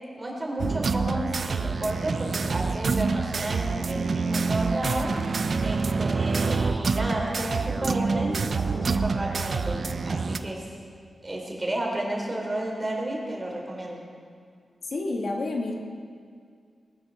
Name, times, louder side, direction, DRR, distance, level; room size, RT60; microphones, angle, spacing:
voice 1, 0.2-10.7 11.2-14.0, right 1 dB, 30° right, -1 dB, 3.5 m, -32 dB
sound 1, 0.6-10.4, right 4 dB, 60° right, 0.6 m, -27 dB
voice 2, 14.8-15.7, left 2 dB, 65° left, 1 dB, 1.8 m, -29 dB
19.5 x 12.5 x 4.4 m, 2.1 s
wide cardioid pair, 95°, 0 cm